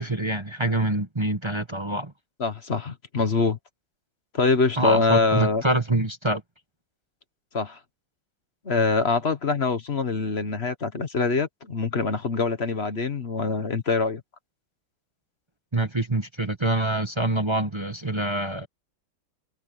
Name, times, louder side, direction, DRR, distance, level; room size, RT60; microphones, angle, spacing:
voice 1, 0.0-2.1 4.8-6.4 15.7-18.7, right 2 dB, 20° right, 0.8 m, -25 dB
voice 2, 2.4-3.6 4.3-5.6 7.5-7.8 8.6-14.2, left 4 dB, 35° left, 1.3 m, -24 dB
omnidirectional pair, 2.3 m